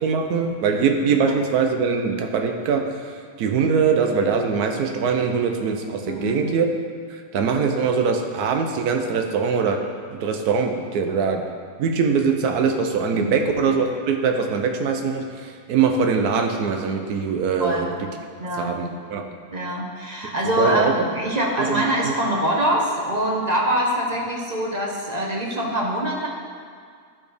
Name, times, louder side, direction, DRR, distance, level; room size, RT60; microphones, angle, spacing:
voice 1, 0.0-2.9 3.4-6.7 7.3-9.8 10.1-11.4 11.8-17.9 18.6-19.3 20.6-20.9 21.6-22.1, right 5 dB, 90° right, 4 dB, 1.2 m, -22 dB
voice 2, 6.1-6.4 13.1-13.4 17.6-17.9 18.4-18.7 19.5-26.3, equal, 35° right, -2 dB, 0.7 m, -24 dB
11.5 x 4.3 x 3.4 m, 2.1 s
omnidirectional pair, 1.6 m